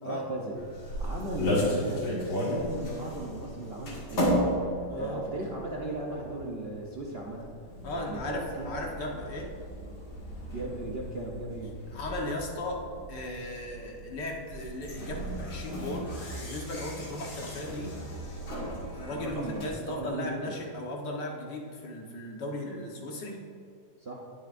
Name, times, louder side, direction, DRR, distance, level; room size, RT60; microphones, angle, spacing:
voice 1, 0.0-0.6 1.0-7.5 7.9-8.8 10.5-11.8 19.1-20.6 24.0-24.2, right 2 dB, 45° right, -2 dB, 0.8 m, -37 dB
sound 1, 0.6-19.7, equal, 85° left, 2.8 m, -35 dB
voice 2, 4.9-5.2 7.8-9.5 11.9-12.8 13.1-17.9 18.9-23.4, left 1 dB, 65° left, -1 dB, 1.9 m, -36 dB
19.0 x 7.1 x 2.6 m, 2.3 s
omnidirectional pair, 2.1 m